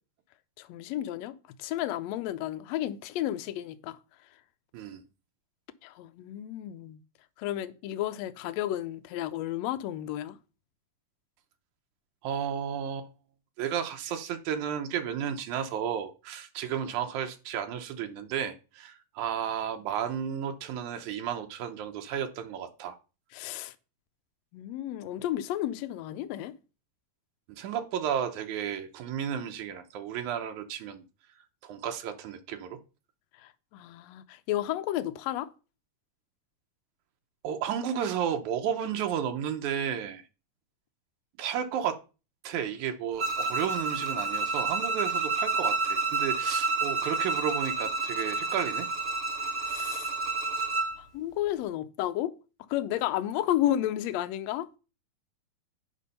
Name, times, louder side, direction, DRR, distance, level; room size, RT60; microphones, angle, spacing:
voice 1, 0.6-1.3 1.6-4.0 5.8-7.0 7.4-10.4 23.3-23.7 24.5-26.5 33.4-35.5 49.7-50.1 51.0-52.3 52.7-54.8, left 13 dB, 75° left, 1.7 m, -32 dB
voice 2, 12.2-13.1 13.6-23.0 27.5-31.0 31.6-32.8 37.4-40.2 41.4-42.0 42.4-48.9, right 8 dB, 85° right, 2.3 m, -33 dB
Bowed string instrument, 43.2-51.0, right 3 dB, 45° right, 0.7 m, -29 dB
8.4 x 5.4 x 5.3 m
omnidirectional pair, 3.3 m